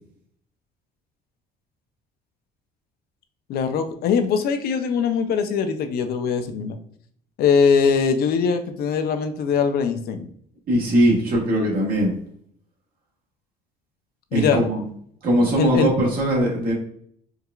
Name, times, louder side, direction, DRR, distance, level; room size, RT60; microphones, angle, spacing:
voice 1, 3.5-6.8 7.4-10.3 14.3-14.6 15.6-15.9, left 6 dB, 65° left, 8 dB, 0.5 m, -21 dB
voice 2, 10.7-12.2 14.3-14.8 15.2-16.7, right 1 dB, 60° right, -2 dB, 1.3 m, -20 dB
4.7 x 2.3 x 2.3 m, 0.63 s
cardioid pair, 110°, 17 cm